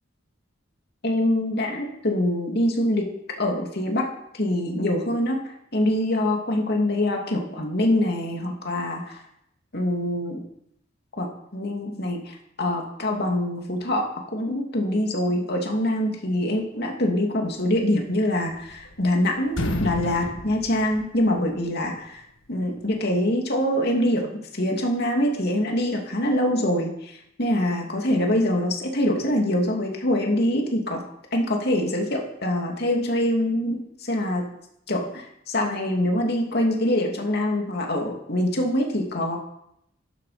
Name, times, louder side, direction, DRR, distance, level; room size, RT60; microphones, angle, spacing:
voice 1, 1.0-3.1 3.4-4.1 4.3-9.2 9.7-10.4 11.2-22.2 22.5-31.0 31.3-34.5 34.9-39.4, left 1 dB, 50° left, 1 dB, 2.7 m, -24 dB
sound 1, 18.3-19.2 19.5-21.6, left 1 dB, 70° left, 1.6 m, -31 dB
12.5 x 12.0 x 5.1 m, 0.76 s
head